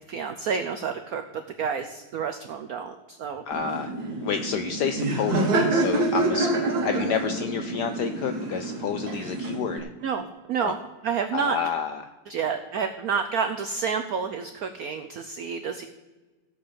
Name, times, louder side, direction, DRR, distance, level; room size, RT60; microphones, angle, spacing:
voice 1, 0.1-3.4 10.0-10.8 11.0-11.6 12.3-15.9, right 6 dB, 85° right, 7 dB, 0.8 m, -29 dB
voice 2, 3.5-3.9 4.2-6.5 6.8-9.9 10.6-10.7 11.3-12.0, left 7 dB, 75° left, 8 dB, 0.9 m, -29 dB
Laughter, 3.5-9.8, right 2 dB, 50° right, 1.9 m, -27 dB
16.0 x 5.4 x 6.9 m, 1.2 s
omnidirectional pair, 2.3 m